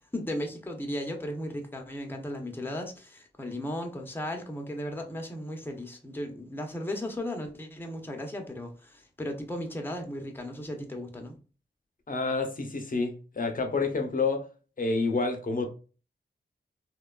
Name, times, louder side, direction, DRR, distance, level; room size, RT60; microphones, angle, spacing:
voice 1, 0.1-11.4, left 1 dB, 10° left, 0.7 m, -36 dB
voice 2, 12.1-14.4 14.8-15.7, left 3 dB, 50° left, 0.6 m, -28 dB
2.9 x 2.2 x 2.2 m
cardioid pair, 45°, 18 cm